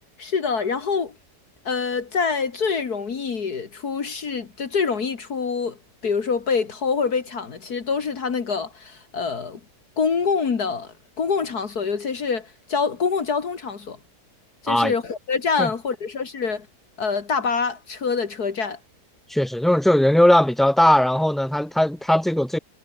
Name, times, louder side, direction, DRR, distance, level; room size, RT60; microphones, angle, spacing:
voice 1, 0.2-1.1 1.7-5.8 6.0-9.6 10.0-10.9 11.2-14.0 14.6-16.7 17.0-18.8, left 5 dB, 65° left, 2.4 m, -25 dB
voice 2, 19.3-22.6, left 1 dB, ahead, 3.8 m, -18 dB
omnidirectional pair, 1.8 m